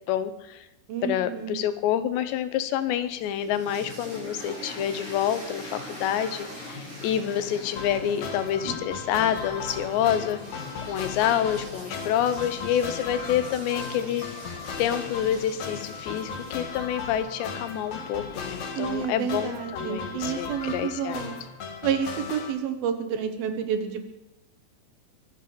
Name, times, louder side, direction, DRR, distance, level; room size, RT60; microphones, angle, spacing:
voice 1, 0.1-0.7 1.0-14.3 14.8-21.2, left 10 dB, 85° left, 12 dB, 3.2 m, -28 dB
voice 2, 0.9-1.5 18.8-21.3 21.8-24.0, right 8 dB, 65° right, 7 dB, 2.8 m, -29 dB
sound 1, 3.1-19.0, left 1 dB, 40° right, 8.3 m, -42 dB
sound 2, 7.8-22.5, left 5 dB, 50° left, 2.4 m, -37 dB
23.5 x 8.2 x 7.0 m, 0.87 s
omnidirectional pair, 5.0 m